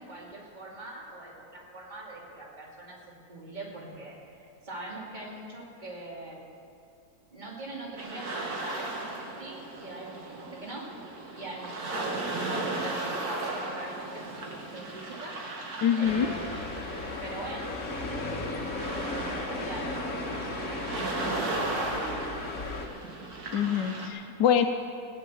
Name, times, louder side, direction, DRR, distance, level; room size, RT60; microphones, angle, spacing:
voice 1, 0.0-3.0 3.3-6.4 7.3-10.9 11.4-15.4 16.0-20.5 20.9-22.3, right 2 dB, 25° right, -3 dB, 2.6 m, -42 dB
sound 1, 8.0-24.1, right 2 dB, 65° right, 2.1 m, -36 dB
voice 2, 15.8-16.3 23.5-24.7, left 8 dB, 90° left, 4 dB, 1.4 m, -24 dB
sound 2, 16.0-22.9, left 2 dB, 50° left, 1.6 m, -35 dB
17.0 x 10.0 x 7.1 m, 2.3 s
omnidirectional pair, 1.8 m